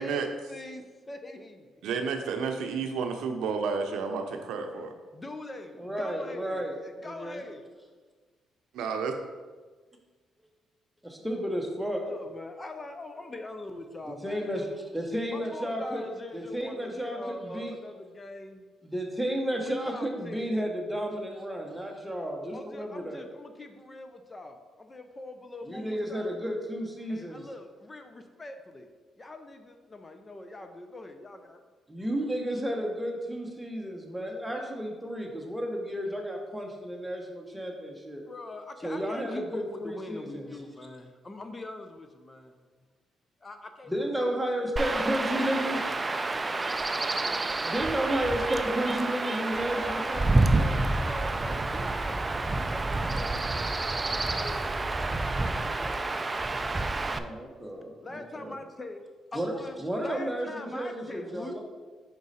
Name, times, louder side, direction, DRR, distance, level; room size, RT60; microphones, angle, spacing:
voice 1, 0.0-1.7 5.1-7.6 12.1-14.6 15.3-18.6 19.6-20.7 22.5-26.4 27.1-28.9 29.2-31.6 38.2-42.6 43.4-43.9 44.2-45.0 45.7-45.9 49.7-56.3 58.0-59.0 59.3-59.8 60.0-61.6, left 2 dB, 25° left, 6 dB, 0.6 m, -43 dB
voice 2, 1.8-4.9 8.7-9.2, right 5 dB, 85° right, 5 dB, 0.6 m, -31 dB
voice 3, 5.8-6.7 7.0-7.4 11.0-12.0 14.1-14.7 14.9-16.0 16.3-17.7 18.8-23.2 25.6-27.4 31.9-38.2 38.8-40.5 43.9-45.8 47.6-50.7 57.1-58.6 59.3-59.5 59.8-61.6, equal, 5° right, 1 dB, 1.0 m, -32 dB
Chirp tweet / Wind / Stream, 44.8-57.2, right 2 dB, 25° right, 0.4 m, -28 dB
5.2 x 4.7 x 4.1 m, 1.4 s
cardioid pair, 90°, 0 cm